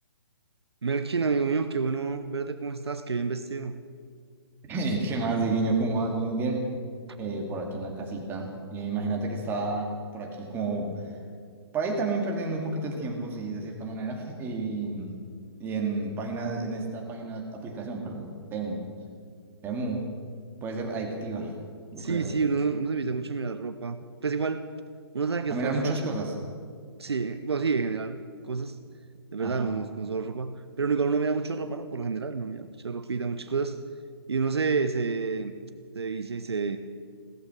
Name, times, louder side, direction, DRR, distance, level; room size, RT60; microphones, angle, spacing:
voice 1, 0.8-3.7 22.0-24.0 24.2-24.7 25.1-26.2 27.0-28.2 28.5-28.8 29.3-33.8 34.3-35.5 35.9-36.8, right 4 dB, 70° right, 10 dB, 0.8 m, -29 dB
voice 2, 4.7-6.6 7.2-11.1 11.7-15.2 15.6-18.8 19.6-20.1 20.6-21.6 21.9-22.3 25.5-26.3 29.4-29.7, right 3 dB, 15° right, 1 dB, 2.2 m, -30 dB
16.0 x 14.0 x 6.3 m, 2.1 s
figure-of-eight pair, 135°, 14 cm